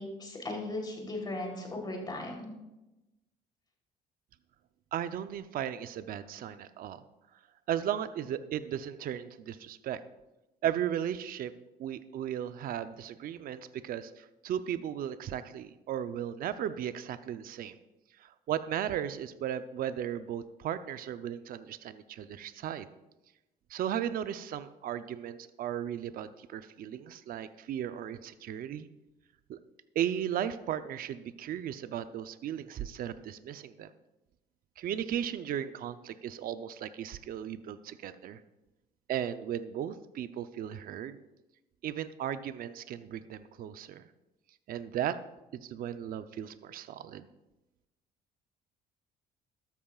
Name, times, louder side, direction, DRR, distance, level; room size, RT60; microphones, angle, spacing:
voice 1, 0.0-2.5, left 2 dB, 25° left, 0 dB, 3.5 m, -37 dB
voice 2, 4.9-7.0 7.7-10.0 10.6-11.5 11.8-17.8 18.2-22.9 23.7-28.9 29.5-29.6 29.9-33.9 34.8-38.4 39.1-41.2 41.8-44.0 44.7-45.2 45.6-47.3, right 10 dB, 60° right, 11 dB, 0.6 m, -36 dB
13.0 x 12.5 x 2.4 m, 1.0 s
cardioid pair, 110°, 17 cm